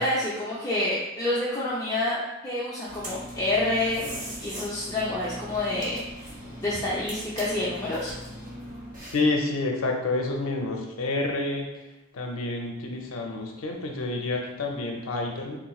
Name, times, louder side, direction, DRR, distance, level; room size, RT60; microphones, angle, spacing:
voice 1, 0.0-4.0 4.4-6.0 6.6-8.1, left 2 dB, 15° left, -8 dB, 0.4 m, -28 dB
sound 1, 2.9-9.4, equal, 40° right, 0.9 m, -39 dB
voice 2, 9.1-11.7 12.1-15.6, left 2 dB, 80° left, 1 dB, 0.5 m, -28 dB
3.7 x 2.9 x 2.3 m, 1.0 s
head